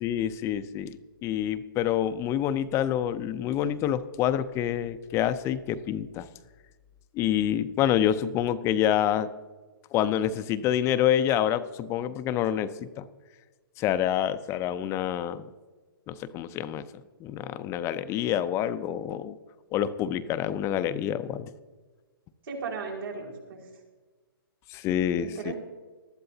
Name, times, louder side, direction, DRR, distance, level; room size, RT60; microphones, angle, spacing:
voice 1, 0.0-6.3 7.1-9.3 9.9-13.1 13.8-15.5 16.1-16.8 17.2-19.4 19.7-21.5 24.7-25.5, left 10 dB, 20° left, 12 dB, 0.5 m, -27 dB
voice 2, 22.4-23.6 25.2-25.5, right 5 dB, 70° right, -2 dB, 5.0 m, -36 dB
20.0 x 13.0 x 2.8 m, 1.3 s
hypercardioid pair, 135°, 12 cm